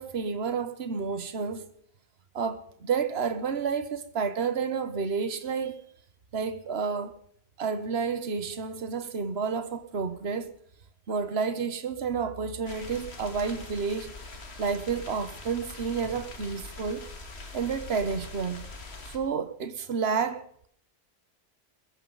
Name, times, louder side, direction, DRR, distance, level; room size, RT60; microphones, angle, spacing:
voice 1, 0.0-1.7 2.3-5.7 6.3-7.2 7.6-10.5 11.1-14.1 14.6-17.1 17.5-18.6 19.1-20.7, right 5 dB, 75° right, 1.3 m, -30 dB
sound 1, 12.7-19.2, left 3 dB, 75° left, 2.1 m, -43 dB
21.0 x 15.0 x 4.0 m
omnidirectional pair, 1.1 m